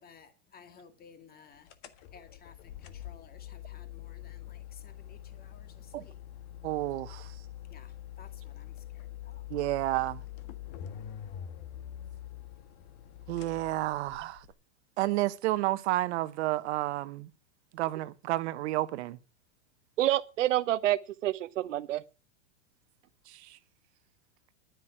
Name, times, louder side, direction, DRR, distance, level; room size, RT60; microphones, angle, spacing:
voice 1, 0.0-1.7 2.1-6.2 7.6-9.5, left 6 dB, 25° left, 2.3 m, -56 dB
sound 1, 1.7-14.5, left 11 dB, 55° left, 1.7 m, -45 dB
voice 2, 6.6-7.3 9.5-10.2 13.3-14.4 15.0-17.3 17.7-19.2 23.3-23.6, right 17 dB, 65° right, 1.2 m, -31 dB
voice 3, 20.0-22.0, right 14 dB, 85° right, 1.0 m, -28 dB
11.0 x 9.4 x 6.1 m
hypercardioid pair, 120°, 37 cm